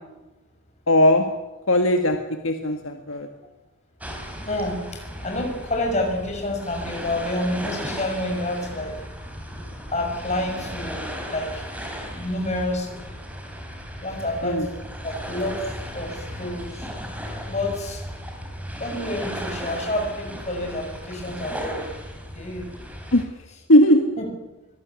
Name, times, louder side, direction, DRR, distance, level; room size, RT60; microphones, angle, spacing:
voice 1, 0.9-1.3 1.7-2.2 2.4-3.3 14.4-14.7 23.1-23.2 23.7-24.0, left 1 dB, 65° left, 5 dB, 1.8 m, -18 dB
sound 1, 4.0-23.2, equal, 5° right, 3.8 m, -36 dB
voice 2, 4.5-8.9 9.9-11.6 12.1-13.1 14.0-15.7 15.9-16.8 17.5-18.0 18.8-22.0 22.3-22.8 24.2-24.3, left 1 dB, 30° left, 2 dB, 6.4 m, -29 dB
24.5 x 18.0 x 8.4 m, 1.0 s
head